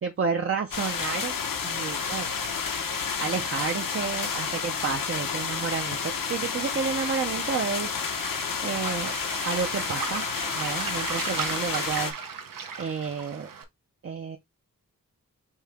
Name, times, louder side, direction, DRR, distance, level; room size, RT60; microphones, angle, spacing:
voice 1, 0.0-1.3 1.6-2.3 3.2-8.0 8.6-9.2 9.4-10.2 10.5-12.2 12.8-13.5 14.0-14.4, right 6 dB, 40° right, 0.6 m, -30 dB
sound 1, 0.7-12.1, left 6 dB, 75° left, 0.9 m, -30 dB
Waves surf, 1.6-13.6, right 6 dB, 75° right, 0.8 m, -39 dB
5.5 x 2.7 x 3.4 m
wide cardioid pair, 140°, 33 cm